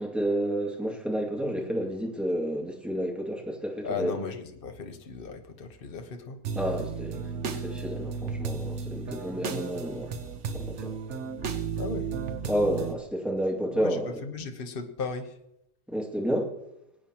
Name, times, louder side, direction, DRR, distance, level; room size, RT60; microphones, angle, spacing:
voice 1, 0.0-4.1 6.6-10.1 10.5-11.0 12.4-14.1 15.9-16.5, equal, ahead, -2 dB, 2.2 m, -30 dB
voice 2, 3.8-6.4 11.8-12.1 13.7-15.4, left 5 dB, 40° left, 6 dB, 1.1 m, -36 dB
sound 1, 6.4-12.9, right 6 dB, 50° right, 1.2 m, -34 dB
22.5 x 9.0 x 3.0 m, 0.84 s
omnidirectional pair, 1.7 m